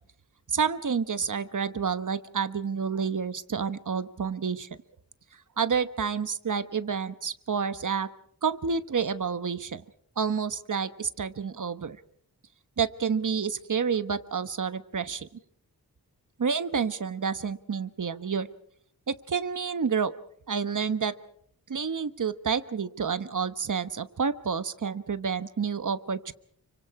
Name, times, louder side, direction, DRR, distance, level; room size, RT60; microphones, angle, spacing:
voice 1, 0.5-4.7 5.6-8.1 8.4-9.8 10.2-12.0 12.8-15.3 16.4-18.5 19.1-20.1 20.5-21.1 21.7-26.3, right 6 dB, 50° right, 13 dB, 1.2 m, -29 dB
30.0 x 24.5 x 4.8 m, 0.67 s
wide cardioid pair, 115°, 39 cm